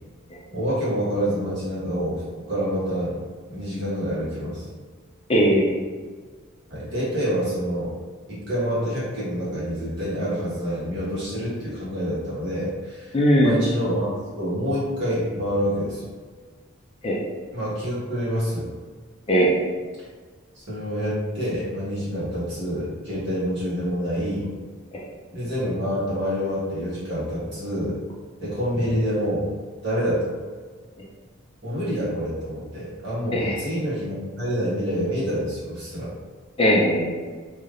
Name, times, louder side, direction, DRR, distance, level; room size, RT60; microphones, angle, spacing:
voice 1, 0.5-2.2 2.5-3.2 3.5-4.7 6.7-7.9 8.3-16.1 17.5-18.7 20.5-24.5 25.3-28.0 28.4-29.5 29.8-30.3 31.6-36.1, equal, 55° right, -10 dB, 1.4 m, -27 dB
voice 2, 5.3-5.8 13.1-13.6 17.0-17.2 19.3-19.5 24.9-25.0 33.3-33.6 36.6-37.0, equal, 25° left, -3 dB, 0.4 m, -19 dB
3.3 x 2.7 x 2.5 m, 1.5 s
head